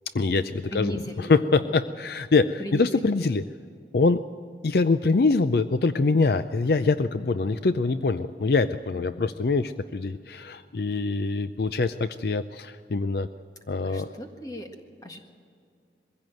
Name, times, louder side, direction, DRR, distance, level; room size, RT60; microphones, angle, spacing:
voice 1, 0.1-3.4 3.9-4.2 4.6-13.3 13.7-14.1, left 3 dB, 60° left, 12 dB, 0.5 m, -24 dB
voice 2, 0.7-1.3 1.6-1.9 2.6-3.4 8.9-9.2 13.8-14.7 15.0-15.2, left 1 dB, 20° left, 4 dB, 1.7 m, -38 dB
22.0 x 16.0 x 7.7 m, 2.3 s
head